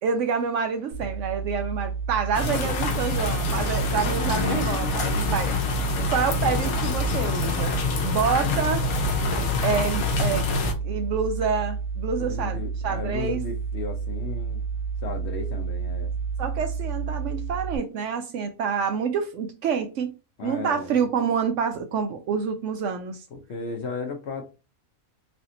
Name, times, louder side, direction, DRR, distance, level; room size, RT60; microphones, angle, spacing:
voice 1, 0.0-5.5 6.0-7.7 8.0-8.9 9.6-10.4 10.8-13.4 16.4-20.1 20.4-23.2, right 6 dB, 70° right, 0.8 m, -27 dB
sound 1, 0.9-17.8, right 5 dB, 90° right, 1.1 m, -31 dB
sound 2, 2.3-10.7, left 4 dB, 75° left, 1.2 m, -26 dB
voice 2, 5.0-5.4 12.2-14.6 15.0-16.1 20.4-20.9 23.3-24.4, left 4 dB, 55° left, 0.9 m, -35 dB
3.2 x 2.7 x 2.6 m
omnidirectional pair, 1.5 m